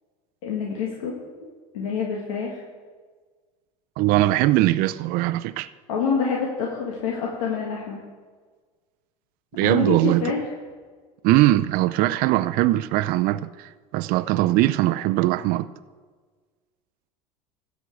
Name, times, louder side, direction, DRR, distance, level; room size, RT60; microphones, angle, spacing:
voice 1, 0.4-1.1 1.7-2.6 5.9-8.0 9.6-10.4, left 5 dB, 85° left, 1.9 m, -26 dB
voice 2, 4.0-5.7 9.5-10.3 11.2-15.7, right 16 dB, 60° right, 0.5 m, -21 dB
13.5 x 6.2 x 8.3 m
supercardioid pair, 95°, 17 cm